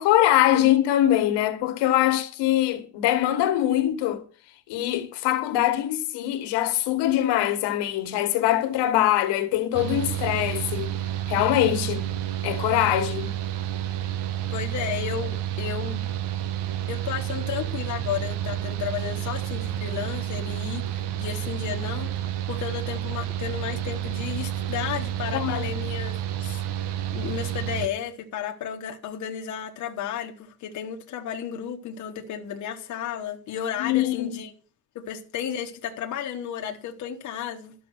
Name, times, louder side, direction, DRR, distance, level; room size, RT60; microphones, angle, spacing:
voice 1, 0.0-4.2 4.7-10.9 11.3-12.1 12.4-13.3 25.3-25.7 33.8-34.3, left 13 dB, 85° left, 1.7 m, -23 dB
Mechanical fan, 9.7-27.9, right 11 dB, 80° right, 1.2 m, -30 dB
voice 2, 14.5-16.0 16.9-26.6 27.1-34.5 34.9-37.7, left 9 dB, 45° left, 1.2 m, -33 dB
12.0 x 6.9 x 6.0 m
cardioid pair, 175°, 40 cm